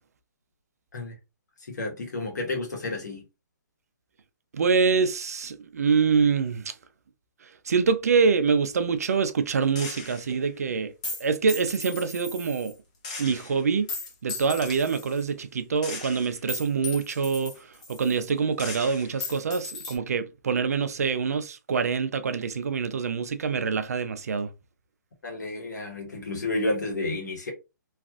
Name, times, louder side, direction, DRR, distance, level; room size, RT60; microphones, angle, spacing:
voice 1, 1.7-3.2 25.2-27.5, left 2 dB, 65° left, 1.3 m, -31 dB
voice 2, 4.5-6.7 7.7-10.9 11.2-12.7 13.2-13.9 14.2-17.5 17.9-24.5, right 5 dB, 55° right, 0.4 m, -25 dB
Gunshot gunfire, 9.8-10.4 11.0-12.7 13.0-15.3 15.8-18.3 18.6-20.0, left 3 dB, 20° left, 0.6 m, -37 dB
3.2 x 2.5 x 2.4 m
hypercardioid pair, 175°, 10 cm